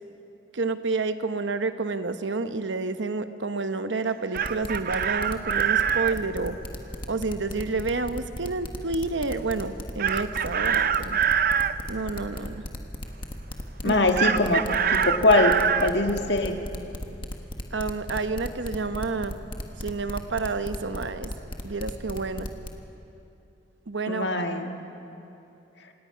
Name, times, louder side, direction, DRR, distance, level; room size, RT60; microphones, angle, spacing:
voice 1, 0.5-6.6 7.1-11.2 11.9-12.6 13.9-14.0 17.7-19.4 19.8-21.3 21.6-22.5 23.9-24.4, right 3 dB, 90° right, 10 dB, 1.0 m, -29 dB
Chicken rooster, 4.1-6.2 10.0-11.7 14.2-15.9, right 7 dB, 50° right, 0.5 m, -24 dB
sound 1, 4.4-22.7, left 1 dB, 30° left, 1.4 m, -35 dB
voice 2, 13.8-14.6 14.9-15.6 15.8-16.6 24.1-24.7, left 2 dB, 75° left, 4 dB, 1.6 m, -22 dB
26.5 x 18.5 x 5.8 m, 2.8 s
head